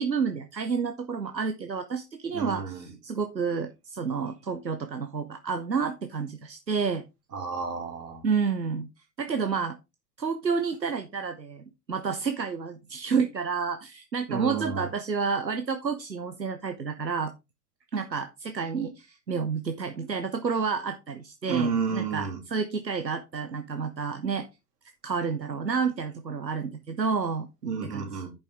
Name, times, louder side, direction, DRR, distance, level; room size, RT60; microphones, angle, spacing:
voice 1, 0.0-7.0 8.2-8.9 9.2-9.8 10.2-17.3 17.9-24.5 25.0-27.5 27.9-28.1, right 5 dB, 90° right, 8 dB, 0.8 m, -30 dB
voice 2, 2.3-2.9 7.3-8.2 14.3-14.9 21.5-22.4 27.6-28.3, right 5 dB, 65° right, 4 dB, 2.7 m, -31 dB
10.5 x 5.5 x 3.4 m, 0.24 s
figure-of-eight pair, 95°, 49 cm